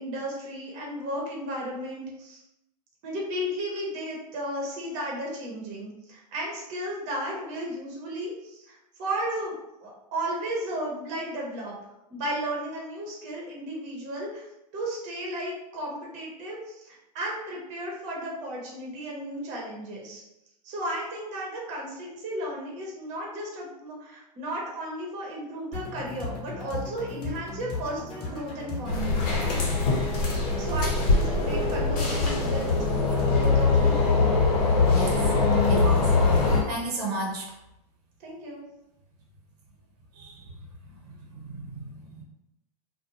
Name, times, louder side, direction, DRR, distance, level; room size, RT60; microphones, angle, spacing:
voice 1, 0.0-2.4 3.0-9.5 9.8-11.7 12.1-14.5 14.7-20.2 20.6-29.5 30.6-32.9 33.2-34.0 38.2-38.6, right 1 dB, 35° right, -2 dB, 0.8 m, -34 dB
sound 1, 25.7-33.7, left 3 dB, 25° left, 0.8 m, -37 dB
sound 2, 28.9-36.6, left 3 dB, 65° left, 1.1 m, -22 dB
voice 2, 35.7-36.1 36.7-37.5 40.2-40.4 41.3-42.2, right 2 dB, 70° right, -1 dB, 0.8 m, -33 dB
2.5 x 2.2 x 2.9 m, 0.88 s
supercardioid pair, 135°, 21 cm